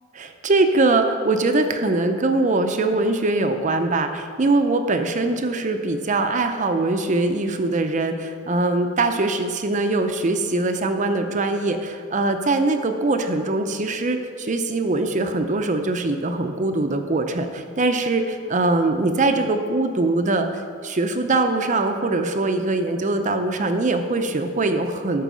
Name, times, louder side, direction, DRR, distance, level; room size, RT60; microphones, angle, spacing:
voice 1, 0.1-25.2, right 2 dB, 40° right, 6 dB, 0.6 m, -22 dB
12.0 x 4.7 x 6.2 m, 2.1 s
head